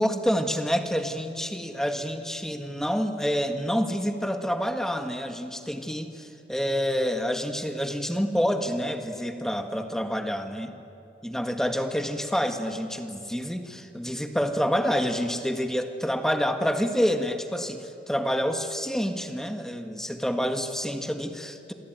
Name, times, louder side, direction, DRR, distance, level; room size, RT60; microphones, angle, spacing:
voice 1, 0.0-10.7 11.2-21.7, equal, 5° left, 5 dB, 1.7 m, -28 dB
28.0 x 23.0 x 9.3 m, 2.8 s
head